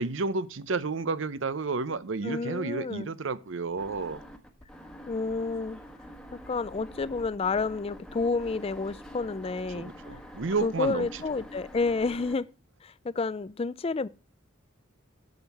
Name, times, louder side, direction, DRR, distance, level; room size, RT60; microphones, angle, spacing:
voice 1, 0.0-4.2 9.7-11.2, right 4 dB, 65° right, 0.7 m, -31 dB
voice 2, 2.2-3.1 5.1-5.8 6.3-9.9 10.6-12.5 12.8-14.1, left 4 dB, 30° left, 0.4 m, -30 dB
sound 1, 3.8-12.4, equal, 5° left, 1.2 m, -46 dB
7.8 x 7.2 x 5.8 m
head